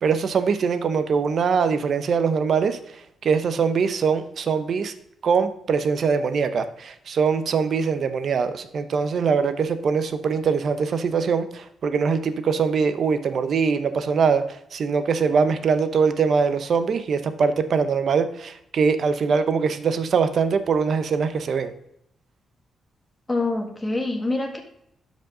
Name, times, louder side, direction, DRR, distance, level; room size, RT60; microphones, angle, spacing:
voice 1, 0.0-2.8 3.2-4.9 5.2-14.5 14.7-21.7, right 5 dB, 55° right, 10 dB, 0.8 m, -22 dB
voice 2, 23.3-24.6, left 2 dB, 15° left, 2 dB, 1.8 m, -25 dB
12.0 x 5.2 x 3.8 m, 0.78 s
cardioid pair, 115°, 0 cm